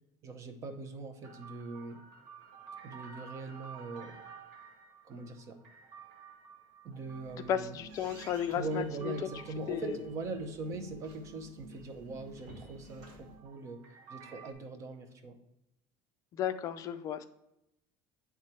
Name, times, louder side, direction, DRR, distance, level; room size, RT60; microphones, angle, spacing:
voice 1, 0.2-2.0 2.8-4.2 5.1-5.6 6.8-7.7 8.5-13.8 14.1-15.4, right 3 dB, 35° right, 6 dB, 0.7 m, -41 dB
sound 1, 1.2-11.5 11.7-14.5, right 6 dB, 70° right, 1.2 m, -53 dB
sound 2, 6.8-13.3, right 1 dB, 50° right, 1.8 m, -52 dB
voice 2, 7.3-9.1 9.7-10.0 16.3-17.2, left 9 dB, 35° left, 10 dB, 0.4 m, -34 dB
8.0 x 3.6 x 4.3 m, 0.86 s
cardioid pair, 170°, 9 cm